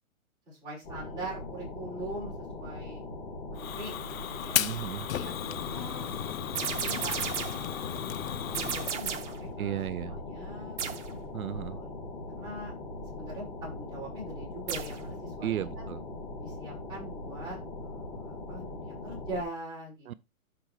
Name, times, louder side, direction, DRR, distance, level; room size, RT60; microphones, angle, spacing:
voice 1, 0.5-3.0 3.5-4.6 5.1-6.1 6.5-7.1 7.5-7.9 8.2-9.8 10.1-10.8 11.5-11.9 12.3-12.7 13.2-15.9 16.4-20.1, right 1 dB, 10° right, 5.4 m, -42 dB
sound 1, 0.8-19.4, left 2 dB, 25° left, 2.4 m, -41 dB
Fire, 3.6-8.9, left 11 dB, 70° left, 0.6 m, -34 dB
voice 2, 4.6-5.1 9.6-10.2 11.3-11.8 15.4-16.0 20.1-20.2, right 11 dB, 80° right, 0.6 m, -34 dB
sound 2, 6.6-7.7 8.5-9.4 10.8-11.1 14.7-15.0, right 7 dB, 55° right, 1.5 m, -34 dB
11.5 x 5.2 x 3.2 m
hypercardioid pair, 170°, 42 cm